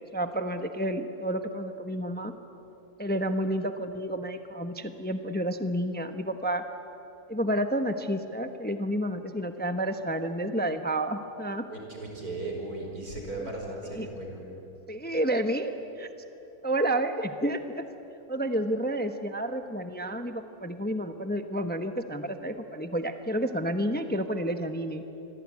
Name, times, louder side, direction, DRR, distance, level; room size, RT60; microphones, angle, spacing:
voice 1, 0.0-2.3 3.0-6.6 7.3-11.6 13.4-13.5 13.9-14.1 14.9-16.1 16.6-17.8 18.3-25.0, right 1 dB, 10° left, 7 dB, 0.9 m, -30 dB
voice 2, 11.7-14.4, right 2 dB, 80° right, 1 dB, 5.8 m, -36 dB
28.0 x 22.5 x 9.5 m, 3.0 s
omnidirectional pair, 1.6 m